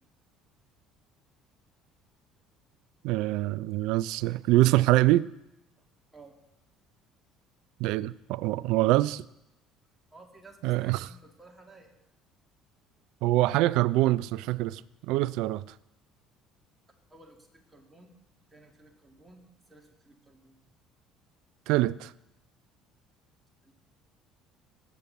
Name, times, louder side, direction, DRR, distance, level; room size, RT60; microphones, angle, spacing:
voice 1, 3.0-5.3 7.8-9.3 10.6-11.0 13.2-15.6 21.7-22.1, right 17 dB, 65° right, 0.3 m, -25 dB
voice 2, 10.1-11.9 17.1-18.1 18.5-20.6 23.6-23.7, right 2 dB, 15° right, 2.3 m, -54 dB
18.0 x 8.4 x 4.1 m
hypercardioid pair, 60°, 0 cm